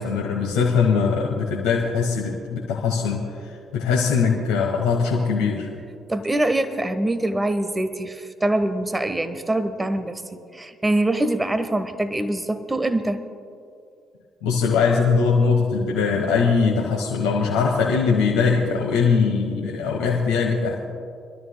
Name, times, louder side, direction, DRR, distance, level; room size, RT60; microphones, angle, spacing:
voice 1, 0.0-5.7 14.4-20.8, left 5 dB, 75° left, -2 dB, 1.3 m, -21 dB
voice 2, 6.1-13.2, right 1 dB, 20° right, 10 dB, 1.0 m, -24 dB
26.5 x 12.5 x 2.2 m, 2.4 s
hypercardioid pair, 50°, 0 cm